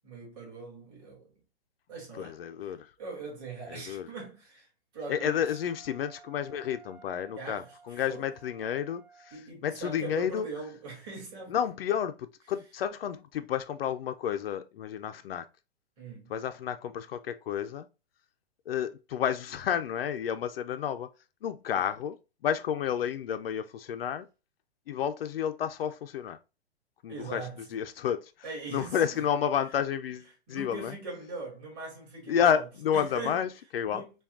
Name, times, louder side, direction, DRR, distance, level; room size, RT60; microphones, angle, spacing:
voice 1, 0.0-1.3 1.9-2.7 3.0-5.4 7.4-8.3 9.3-11.5 16.0-16.3 21.7-21.8 27.1-27.6 28.4-29.2 30.5-32.7 32.9-33.4 33.8-34.1, right 4 dB, 25° right, 2.2 m, -41 dB
voice 2, 2.2-2.9 3.7-4.1 5.1-10.5 11.5-15.5 16.3-17.9 18.7-21.1 21.4-22.2 22.4-24.3 24.9-26.4 27.0-27.4 27.7-28.3 28.7-30.9 32.3-34.0, left 9 dB, 65° left, 0.4 m, -31 dB
Wind instrument woodwind instrument, 5.0-9.4, right 5 dB, 55° right, 0.7 m, -55 dB
5.7 x 2.3 x 2.4 m
hypercardioid pair, 165°, 33 cm